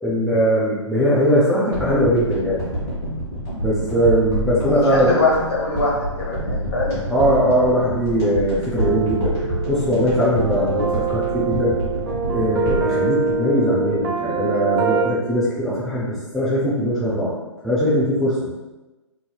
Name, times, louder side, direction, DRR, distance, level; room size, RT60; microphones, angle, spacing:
voice 1, 0.0-2.7 3.6-5.1 7.1-9.3 9.7-11.8 12.3-17.3 17.6-18.4, equal, ahead, -10 dB, 0.5 m, -20 dB
sound 1, 1.7-14.2 14.5-14.6, equal, 15° left, 1.5 m, -28 dB
voice 2, 4.6-7.0, left 3 dB, 55° left, -4 dB, 1.5 m, -23 dB
sound 2, 8.8-15.0, right 5 dB, 45° right, 0.7 m, -25 dB
4.1 x 3.2 x 2.3 m, 1.1 s
figure-of-eight pair, 135°, 16 cm